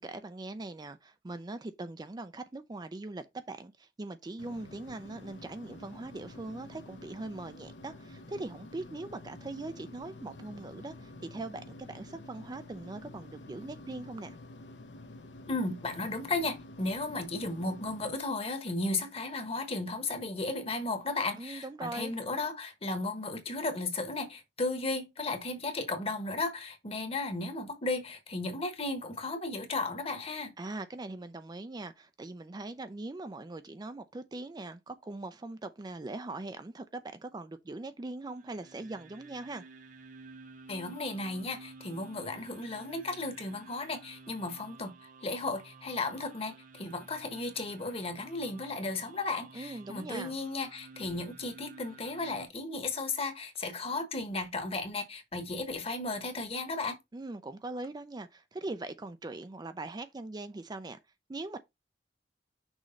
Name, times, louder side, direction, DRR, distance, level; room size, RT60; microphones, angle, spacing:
voice 1, 0.0-14.4 21.4-22.1 30.6-39.6 49.5-50.3 57.1-61.0 61.3-61.6, right 2 dB, 20° right, 0.4 m, -41 dB
sound 1, 4.4-18.2, left 2 dB, 80° left, 1.0 m, -49 dB
voice 2, 15.5-30.5 40.7-44.9 45.2-57.0, left 3 dB, 35° left, 1.3 m, -35 dB
sound 2, 38.1-52.5, right 3 dB, 45° right, 0.9 m, -52 dB
6.2 x 3.1 x 5.2 m
head